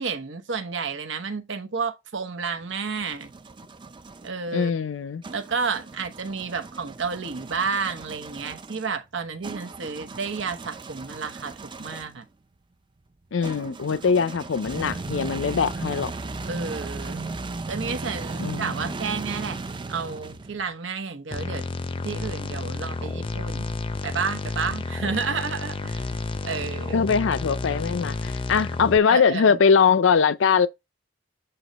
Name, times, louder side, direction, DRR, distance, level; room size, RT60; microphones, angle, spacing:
voice 1, 0.0-3.3 4.2-4.7 5.3-12.2 13.9-14.0 16.5-17.3 17.7-19.6 19.9-21.7 22.0-26.0 26.4-27.0 29.1-29.6, right 5 dB, 80° right, 1.0 m, -31 dB
sound 1, 2.5-4.3 5.2-12.2 13.4-20.7, right 3 dB, 25° right, 0.5 m, -36 dB
voice 2, 4.5-5.2 13.3-16.1 18.4-18.7 26.9-30.7, left 6 dB, 85° left, 0.5 m, -21 dB
sound 2, 21.3-29.0, left 3 dB, 30° left, 0.5 m, -31 dB
7.8 x 3.0 x 4.1 m
head